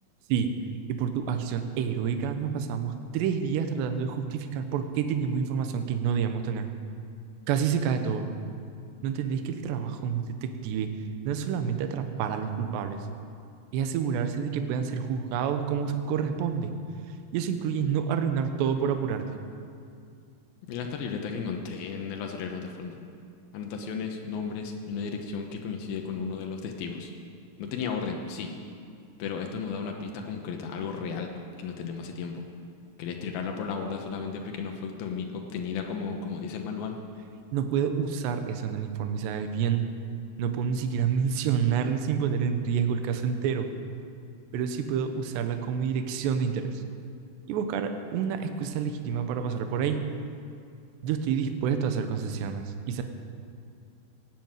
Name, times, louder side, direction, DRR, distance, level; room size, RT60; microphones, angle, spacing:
voice 1, 0.9-6.7 7.5-8.3 9.0-10.9 11.2-13.1 13.7-16.7 17.3-19.3 37.5-39.8 40.4-43.7 44.5-46.8 47.5-50.0 51.0-53.0, right 7 dB, 75° right, 7 dB, 2.7 m, -28 dB
voice 2, 20.7-23.0 23.5-27.1 27.6-28.5 29.2-31.3 31.6-32.4 33.0-37.0, left 5 dB, 85° left, 3 dB, 2.1 m, -34 dB
17.0 x 9.5 x 9.0 m, 2.4 s
omnidirectional pair, 5.9 m